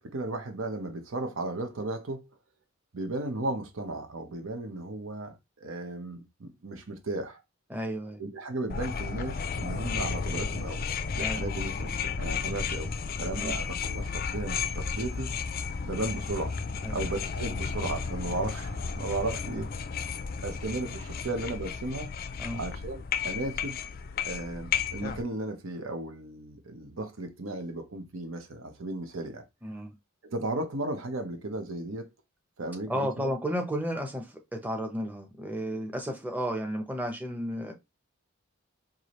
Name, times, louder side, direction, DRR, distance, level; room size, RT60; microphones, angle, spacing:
voice 1, 0.0-2.3 2.9-7.4 8.2-12.9 13.2-15.3 15.8-16.5 16.9-19.7 20.4-22.1 22.5-23.8 24.2-29.4 30.2-32.1 32.6-33.3, right 2 dB, 70° right, 0.9 m, -35 dB
voice 2, 7.7-8.2 11.2-11.4 13.4-13.5 16.8-17.0 22.4-22.6 29.6-29.9 32.9-37.7, equal, 10° right, 0.7 m, -33 dB
sound 1, 8.7-25.2, left 5 dB, 45° left, 0.4 m, -33 dB
4.7 x 2.7 x 3.0 m
head